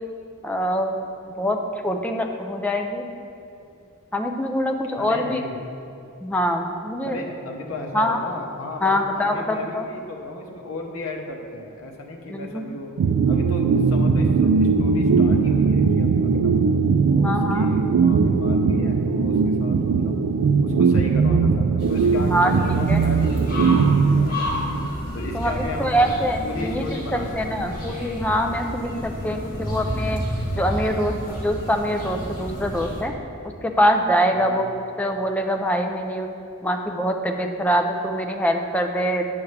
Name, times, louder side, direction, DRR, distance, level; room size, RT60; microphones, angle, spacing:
voice 1, 0.4-1.0 1.4-1.6 1.8-3.0 4.1-5.4 6.2-7.2 7.9-8.2 8.8-9.9 12.3-12.6 17.1-17.7 22.2-23.0 25.3-30.2 30.5-33.1 33.6-34.6 35.0-36.3 36.6-39.3, equal, 5° left, 3 dB, 0.4 m, -24 dB
voice 2, 5.0-5.6 7.0-12.9 13.3-16.6 17.0-20.2 20.6-24.5 25.1-27.8 34.4-34.6, left 2 dB, 70° left, 0 dB, 0.9 m, -35 dB
sound 1, 13.0-24.9, right 5 dB, 85° right, 0.3 m, -19 dB
sound 2, 21.8-33.0, equal, 45° left, 1.8 m, -31 dB
9.3 x 5.8 x 3.3 m, 2.7 s
head